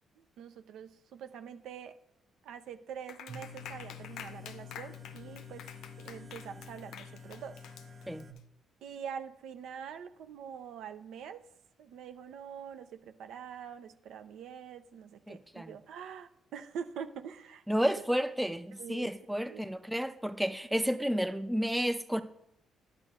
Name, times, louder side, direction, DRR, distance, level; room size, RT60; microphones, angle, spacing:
voice 1, 0.2-1.9 2.4-5.6 6.0-7.6 8.8-11.5 11.8-18.0 18.8-19.7, right 7 dB, 80° right, 0.6 m, -45 dB
Clapping, 3.1-8.4, left 9 dB, 80° left, 0.5 m, -48 dB
sound 1, 3.3-8.3, left 5 dB, 45° right, 1.0 m, -48 dB
voice 2, 15.3-15.8 17.7-22.2, equal, 5° right, 0.5 m, -31 dB
11.0 x 8.9 x 2.5 m
cardioid pair, 90°, 0 cm